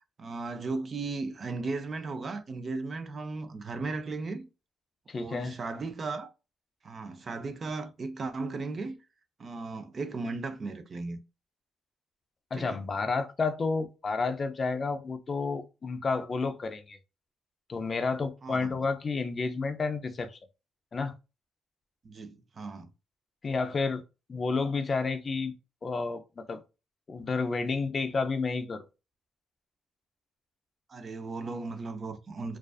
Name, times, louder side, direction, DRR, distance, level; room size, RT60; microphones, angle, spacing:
voice 1, 0.2-4.5 5.2-6.3 6.8-9.0 9.4-11.2 12.6-12.8 18.4-18.8 22.0-22.9 30.9-32.6, right 3 dB, 40° right, 0.4 m, -36 dB
voice 2, 5.1-5.6 12.5-17.0 17.7-20.4 20.9-21.1 23.4-24.0 24.3-25.5 25.8-26.6 27.1-28.8, left 4 dB, 40° left, 0.4 m, -30 dB
2.4 x 2.3 x 2.3 m
cardioid pair, 90°, 0 cm